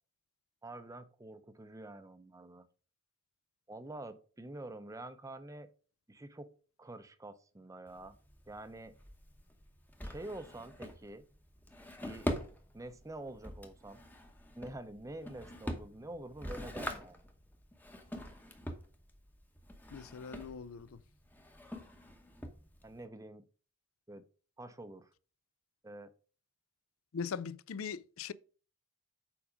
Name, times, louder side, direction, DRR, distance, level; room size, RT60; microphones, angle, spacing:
voice 1, 0.6-2.7 3.7-5.7 6.1-6.5 6.8-8.2 8.5-9.0 10.0-11.2 12.0-12.3 12.7-14.0 14.6-17.2 22.8-23.4 24.1-24.2 24.6-25.1 25.8-26.1, right 1 dB, 15° right, 0.5 m, -47 dB
Drawer open or close, 7.9-23.0, equal, 10° left, 0.8 m, -44 dB
voice 2, 19.9-21.0 27.1-28.3, left 6 dB, 70° left, 0.4 m, -40 dB
7.2 x 4.9 x 5.0 m
head